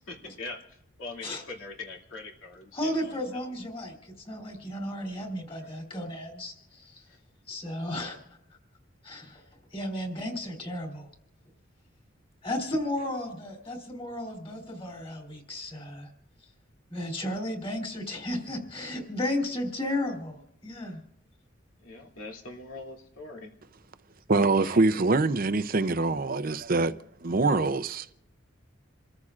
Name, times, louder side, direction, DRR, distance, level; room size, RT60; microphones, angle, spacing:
voice 1, 0.1-3.5 7.1-7.2 13.0-13.1 15.5-15.6 21.8-23.5 24.6-24.9, left 3 dB, 75° left, 2.6 m, -42 dB
voice 2, 2.7-7.1 7.5-8.2 9.0-9.4 9.7-11.1 12.4-16.1 16.9-21.0, left 1 dB, 25° left, 3.1 m, -34 dB
voice 3, 24.3-27.0 27.2-28.1, right 3 dB, 45° right, 0.6 m, -24 dB
28.5 x 14.0 x 2.5 m
head